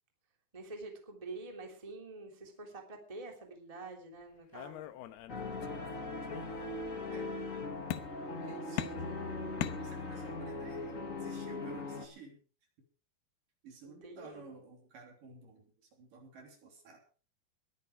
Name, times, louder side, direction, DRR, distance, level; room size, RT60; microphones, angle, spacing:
voice 1, 0.5-4.9 9.0-9.3 13.8-14.5, right 3 dB, 10° right, 2 dB, 2.6 m, -47 dB
sound 1, 4.5-5.9 6.2-7.0 7.9-8.4 8.8-10.4, left 13 dB, 80° left, 2.8 m, -41 dB
sound 2, 5.3-12.1, left 3 dB, 30° left, 1.5 m, -40 dB
voice 2, 8.4-12.4 13.6-17.0, right 3 dB, 55° right, 3 dB, 4.7 m, -53 dB
21.0 x 10.0 x 4.8 m, 0.39 s
omnidirectional pair, 4.8 m